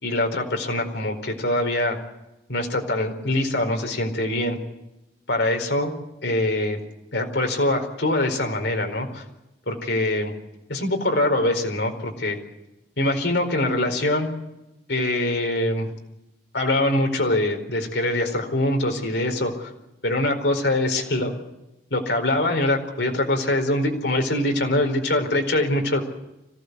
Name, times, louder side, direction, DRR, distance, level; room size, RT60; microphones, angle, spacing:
voice 1, 0.0-2.0 2.5-4.6 5.3-5.9 6.2-6.8 7.1-9.2 9.7-10.3 10.7-12.4 13.0-14.3 14.9-15.9 16.5-19.7 20.0-21.3 21.9-26.0, left 1 dB, 80° left, 3 dB, 4.6 m, -23 dB
26.0 x 17.0 x 8.3 m, 0.92 s
head